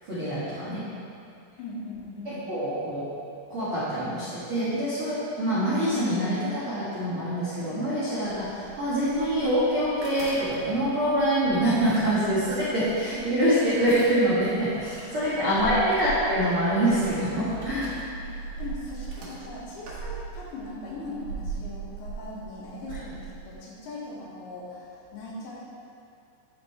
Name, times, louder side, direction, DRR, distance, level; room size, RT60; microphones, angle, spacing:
voice 1, 0.0-0.8 2.2-3.1 3.5-17.9 22.9-23.0, equal, 85° right, -13 dB, 1.1 m, -25 dB
voice 2, 1.6-2.4 15.5-16.0 18.2-25.6, left 2 dB, 80° left, -6 dB, 3.5 m, -39 dB
sound 1, 8.2-23.5, right 4 dB, 60° right, 2.1 m, -40 dB
9.3 x 5.3 x 3.2 m, 2.5 s
omnidirectional pair, 5.3 m